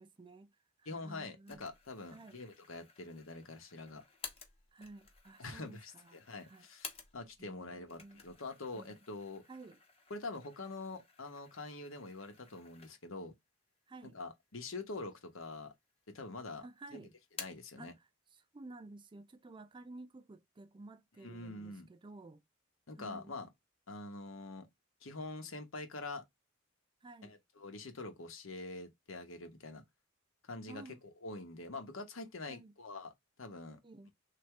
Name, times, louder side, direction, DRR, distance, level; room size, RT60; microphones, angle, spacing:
voice 1, 0.0-1.7 2.1-2.4 4.7-6.7 7.4-8.2 8.7-9.0 9.5-9.8 13.9-14.2 16.6-17.1 17.8-18.0 18.3-22.4 23.0-23.4 27.0-27.4 30.7-31.0 32.5-32.7 33.8-34.1, right 2 dB, 25° right, 0.4 m, -53 dB
voice 2, 0.8-4.0 5.4-9.4 10.1-13.3 14.0-15.7 16.1-16.6 16.9-17.0 17.4-17.9 21.2-21.9 22.9-23.5 23.9-24.7 25.0-26.2 27.2-29.8 30.4-33.1 33.4-33.8, left 3 dB, 85° left, 1.1 m, -45 dB
sound 1, 1.5-7.5 7.8-13.3 13.7-13.8 14.6-15.3 15.6-16.4 16.7-17.8, left 5 dB, 30° left, 0.9 m, -54 dB
3.4 x 2.8 x 4.5 m
head